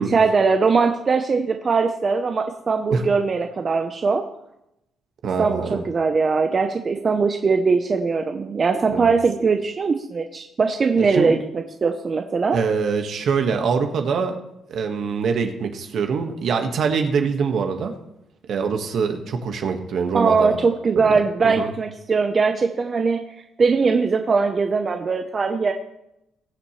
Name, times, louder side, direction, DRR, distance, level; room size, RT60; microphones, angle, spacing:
voice 1, 0.1-4.2 5.4-12.6 20.1-23.2 23.6-25.7, right 4 dB, 40° right, 5 dB, 0.9 m, -21 dB
voice 2, 5.2-5.8 8.9-9.1 11.1-11.4 12.5-14.4 14.7-17.9 18.5-20.6 20.9-21.7, right 5 dB, 65° right, 5 dB, 1.6 m, -24 dB
21.0 x 7.3 x 3.3 m, 0.85 s
cardioid pair, 90°, 0 cm